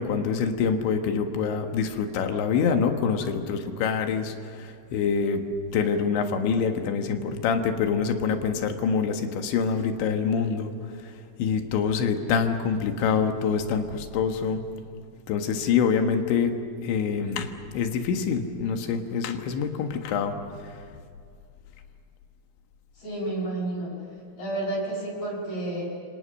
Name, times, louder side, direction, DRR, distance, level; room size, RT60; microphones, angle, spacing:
voice 1, 0.0-5.4 5.7-10.7 11.4-14.6 15.3-20.4, left 6 dB, 75° left, 6 dB, 3.7 m, -26 dB
voice 2, 23.0-23.9 24.4-25.8, right 2 dB, 50° left, -4 dB, 7.6 m, -30 dB
29.5 x 25.0 x 6.4 m, 2.3 s
omnidirectional pair, 5.4 m